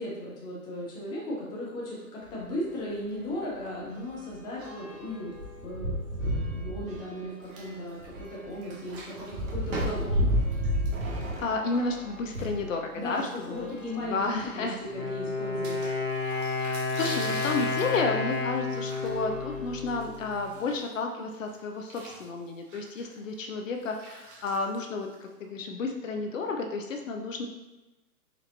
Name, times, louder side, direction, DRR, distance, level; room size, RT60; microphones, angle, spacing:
voice 1, 0.0-5.3 5.6-10.2 12.9-15.8, left 1 dB, 10° left, -5 dB, 0.6 m, -36 dB
sound 1, 2.2-2.4 2.8-2.9 3.2-12.7 13.4-14.8 15.5-15.6 15.8-15.9 17.6-17.7 18.3-18.5 19.0-20.3, equal, 60° right, 1.1 m, -33 dB
sound 2, 7.4-8.3 8.5-12.3 13.0-14.0 14.3-14.4 14.6-14.7 15.6-21.1 21.4-25.5, right 2 dB, 35° right, 1.1 m, -44 dB
voice 2, 11.4-13.7 14.1-14.8 16.5-27.5, left 3 dB, 60° left, 4 dB, 0.6 m, -32 dB
Wind instrument woodwind instrument, 14.8-20.6, left 3 dB, 75° left, 1.4 m, -31 dB
4.4 x 4.0 x 2.6 m, 1.1 s
figure-of-eight pair, 125°, 45 cm